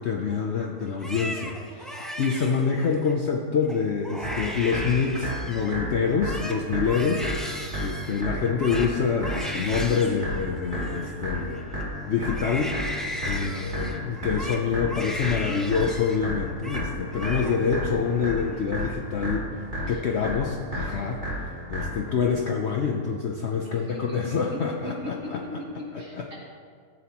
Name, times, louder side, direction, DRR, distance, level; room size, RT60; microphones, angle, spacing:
voice 1, 0.0-1.9 2.2-7.3 7.8-11.6 12.1-12.7 13.2-19.5 19.9-21.2 21.7-25.4 26.2-26.3, left 6 dB, 60° left, 2 dB, 0.7 m, -26 dB
Crying sobbing, 0.9-3.1 3.6-3.8 4.0-5.8 6.1-11.8 12.2-16.2 16.5-16.9 17.1-17.8 18.2-18.8, equal, ahead, 0.4 m, -37 dB
sound 1, 4.2-22.2, equal, 30° right, 2.7 m, -33 dB
voice 2, 19.8-20.2 23.6-26.3, left 1 dB, 55° right, -6 dB, 2.7 m, -39 dB
14.5 x 7.9 x 2.9 m, 2.1 s
omnidirectional pair, 1.7 m